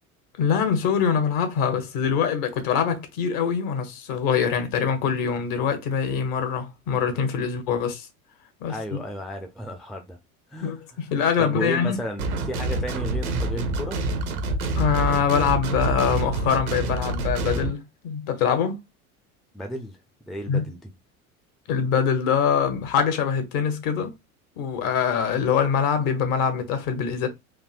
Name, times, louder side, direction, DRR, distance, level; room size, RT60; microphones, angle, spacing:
voice 1, 0.4-8.1 8.6-9.0 10.6-12.0 14.8-18.8 20.5-20.6 21.7-24.1 24.6-27.3, left 7 dB, 50° left, 1.1 m, -24 dB
voice 2, 8.7-10.2 10.5-10.8 11.4-14.0 19.5-20.0 20.3-20.8, equal, ahead, 0.5 m, -33 dB
sound 1, 12.2-17.7, right 2 dB, 75° right, 0.8 m, -27 dB
3.6 x 2.6 x 2.5 m
figure-of-eight pair, 70°, 44 cm